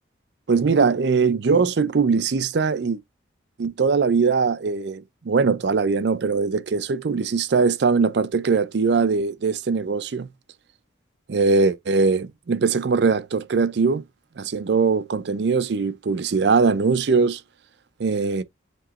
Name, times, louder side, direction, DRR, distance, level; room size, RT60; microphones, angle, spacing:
voice 1, 0.5-3.0 3.6-10.3 11.3-14.0 14.4-17.4 18.0-18.4, right 4 dB, 65° right, 0.5 m, -21 dB
7.5 x 3.0 x 2.4 m
head